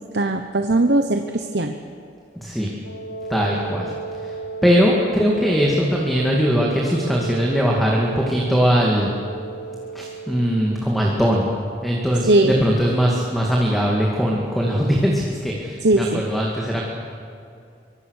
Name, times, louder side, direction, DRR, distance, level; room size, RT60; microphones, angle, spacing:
voice 1, 0.1-1.8 12.3-12.6 15.8-16.2, right 2 dB, 70° right, 5 dB, 1.1 m, -19 dB
voice 2, 2.3-2.7 3.3-4.4 4.6-9.1 9.9-11.5 11.8-16.8, equal, ahead, -2 dB, 2.3 m, -20 dB
Wind instrument woodwind instrument, 2.8-10.7, right 4 dB, 85° left, 2.4 m, -34 dB
24.0 x 23.5 x 6.6 m, 2.4 s
head